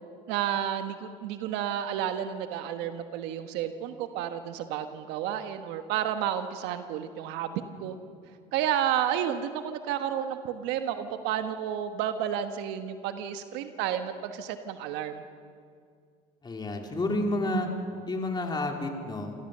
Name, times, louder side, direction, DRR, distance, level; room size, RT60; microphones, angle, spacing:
voice 1, 0.3-8.0 8.5-15.2, right 10 dB, 75° right, 8 dB, 1.3 m, -31 dB
voice 2, 16.4-17.7 18.1-19.4, left 1 dB, 25° left, 2 dB, 3.4 m, -30 dB
27.0 x 16.5 x 6.7 m, 2.2 s
supercardioid pair, 85°, 18 cm